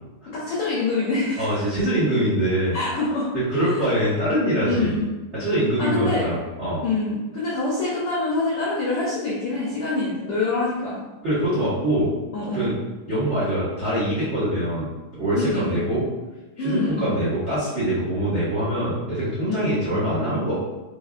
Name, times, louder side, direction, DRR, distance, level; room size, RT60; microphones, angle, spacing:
voice 1, 0.3-1.6 2.7-3.3 3.6-3.8 4.6-5.0 5.8-6.3 6.8-11.0 12.3-12.7 15.3-15.8 16.6-17.1 19.5-19.8, left 3 dB, 85° left, -7 dB, 1.2 m, -25 dB
voice 2, 1.4-2.8 3.3-5.0 5.4-6.8 11.2-12.1 12.5-12.7 13.1-16.0 16.6-20.6, right 1 dB, 80° right, -10 dB, 0.6 m, -24 dB
4.6 x 3.6 x 2.4 m, 1.1 s
omnidirectional pair, 3.7 m